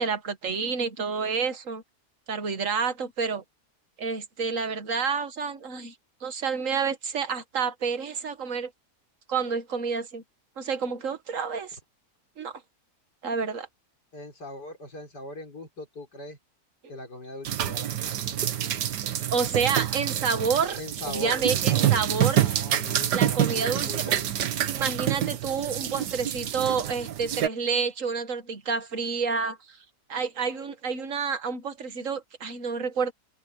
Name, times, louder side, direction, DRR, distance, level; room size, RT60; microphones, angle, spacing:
voice 1, 0.0-1.8 2.3-3.4 4.0-5.9 6.2-8.7 9.3-10.2 10.6-11.8 12.4-12.6 13.2-13.7 19.1-20.8 21.1-22.5 23.1-24.2 24.7-29.8 30.1-33.1, right 5 dB, 50° right, 1.9 m, -29 dB
voice 2, 14.1-16.4 16.9-18.8 19.1-19.3 20.8-22.0 22.3-24.3, left 1 dB, 85° left, 5.8 m, -41 dB
sound 1, 17.4-27.5, right 11 dB, 85° right, 1.6 m, -27 dB
omnidirectional pair, 1.7 m